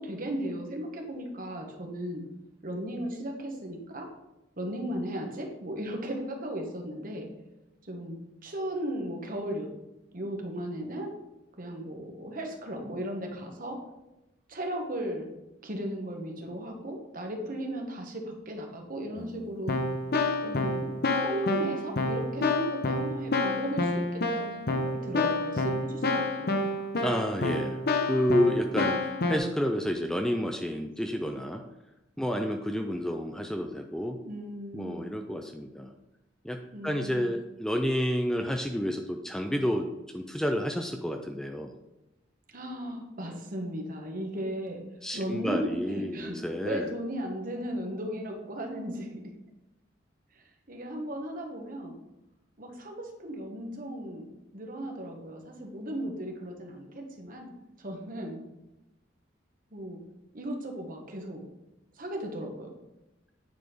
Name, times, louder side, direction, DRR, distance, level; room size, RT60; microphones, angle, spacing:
voice 1, 0.0-2.2 2.6-4.1 4.6-7.3 7.8-8.2 8.4-9.7 10.1-11.1 11.6-13.8 14.5-15.3 15.6-19.8 20.4-26.7 34.2-35.1 36.7-37.3 42.5-44.8 45.1-49.3 50.3-51.9 52.6-57.5 57.8-58.4 59.7-60.0 60.3-61.5 62.0-62.7, right 1 dB, 45° right, 2 dB, 1.3 m, -36 dB
Keyboard (musical), 19.2-19.3 19.7-29.4, left 2 dB, 50° left, 0.8 m, -29 dB
voice 2, 27.0-27.8 28.1-31.6 32.2-34.2 34.7-35.9 36.4-39.9 40.1-41.7 45.0-46.9, equal, 5° left, 4 dB, 0.4 m, -30 dB
9.4 x 4.2 x 5.0 m, 0.96 s
head